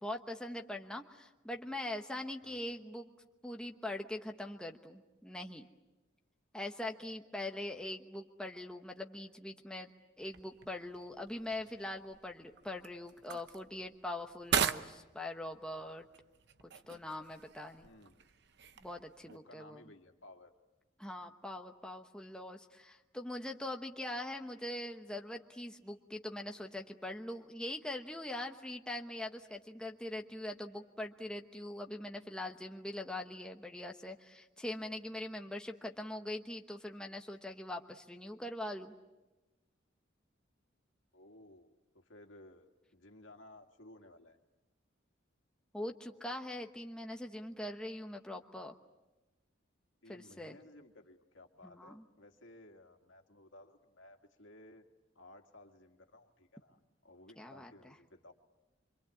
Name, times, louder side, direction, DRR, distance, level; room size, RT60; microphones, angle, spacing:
voice 1, 0.0-3.1 3.4-5.7 6.5-9.9 10.2-16.0 16.9-17.9 18.8-19.8 21.0-39.0 45.7-48.7 50.1-50.6 51.6-52.0 57.4-57.9, left 1 dB, 5° left, 2 dB, 1.1 m, -42 dB
voice 2, 2.4-2.7 7.7-7.8 17.8-18.3 19.2-20.5 41.1-42.7 42.9-44.4 50.0-54.8 55.2-58.3, left 1 dB, 75° left, 4 dB, 2.2 m, -57 dB
sound 1, 10.2-19.4, right 7 dB, 60° right, 0.8 m, -41 dB
25.5 x 25.5 x 8.5 m, 1.1 s
head